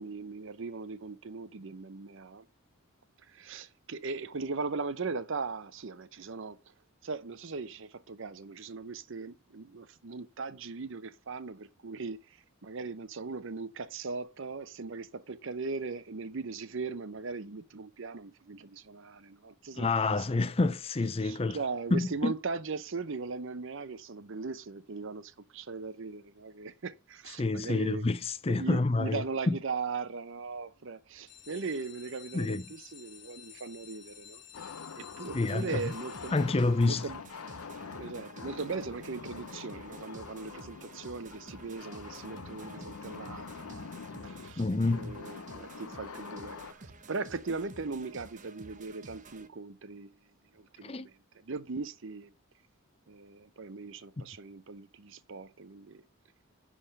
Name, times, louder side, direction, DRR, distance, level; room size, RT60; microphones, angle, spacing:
voice 1, 0.0-2.5 3.2-6.7 7.0-20.5 21.2-28.1 28.5-34.4 34.9-36.4 36.8-37.2 38.0-43.9 44.2-52.3 53.1-56.0, right 4 dB, 60° right, 0.7 m, -39 dB
voice 2, 19.8-21.6 21.9-22.3 27.4-29.2 29.5-29.6 32.3-32.6 35.3-35.8 36.3-37.0 44.6-45.2 50.8-51.1, left 3 dB, 25° left, 0.5 m, -28 dB
sound 1, 31.1-36.9 37.5-38.0 38.4-38.5 38.7-38.8 39.2-39.4, left 11 dB, 55° left, 4.2 m, -53 dB
sound 2, 34.5-46.7, left 5 dB, 80° left, 0.7 m, -45 dB
sound 3, 35.2-49.5, right 2 dB, 35° right, 1.0 m, -52 dB
10.0 x 3.6 x 6.5 m
head